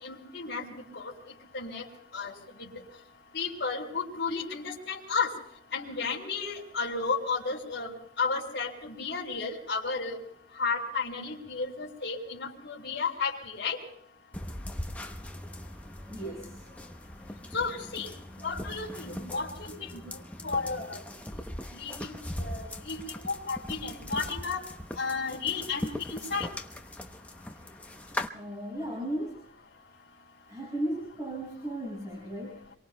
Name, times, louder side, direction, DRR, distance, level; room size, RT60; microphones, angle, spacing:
voice 1, 0.0-0.7 0.9-1.1 1.5-1.8 2.1-2.3 2.6-2.7 3.3-5.3 5.7-10.2 10.5-13.8 17.5-18.1 18.4-21.0 21.7-24.6 25.0-26.5, left 4 dB, 65° left, -5 dB, 3.2 m, -33 dB
sound 1, 14.3-28.3, left 1 dB, 5° left, 0.8 m, -40 dB
voice 2, 16.1-16.6 22.8-23.0 28.3-29.5 30.5-32.8, right 1 dB, 20° right, -4 dB, 5.7 m, -36 dB
27.5 x 23.0 x 2.3 m, 0.68 s
head